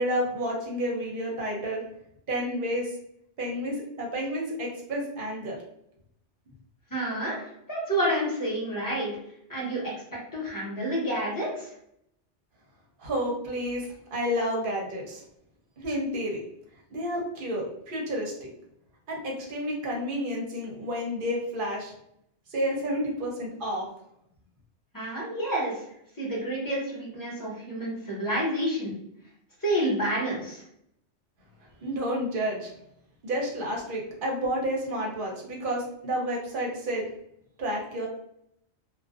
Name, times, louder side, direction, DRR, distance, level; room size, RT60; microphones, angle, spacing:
voice 1, 0.0-1.8 2.3-2.9 3.4-5.6 13.0-13.8 14.1-15.2 15.8-16.4 16.9-18.3 19.1-21.9 22.5-23.8 31.8-32.7 33.2-37.1 37.6-38.1, equal, 55° right, -1 dB, 0.7 m, -30 dB
voice 2, 6.9-7.4 7.7-9.1 9.5-9.8 10.3-11.7 24.9-25.7 26.2-28.9 29.6-30.6, right 1 dB, 20° left, -6 dB, 0.9 m, -29 dB
2.4 x 2.2 x 2.4 m, 0.75 s
omnidirectional pair, 1.2 m